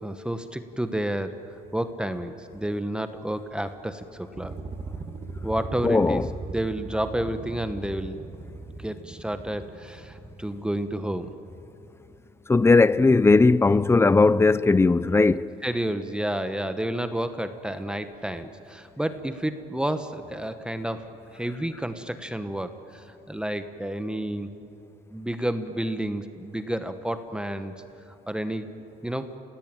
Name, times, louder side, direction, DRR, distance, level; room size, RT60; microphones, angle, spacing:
voice 1, 0.0-1.3 1.7-4.5 5.4-6.2 6.5-8.2 8.8-11.3 15.6-24.5 25.1-27.7 28.3-28.7 29.0-29.3, right 1 dB, 5° right, 1.2 m, -30 dB
sound 1, 4.3-11.0, right 3 dB, 30° right, 2.1 m, -39 dB
voice 2, 5.8-6.3 12.5-15.5, left 3 dB, 15° left, 0.6 m, -18 dB
30.0 x 17.5 x 9.1 m
cardioid pair, 110°, 17 cm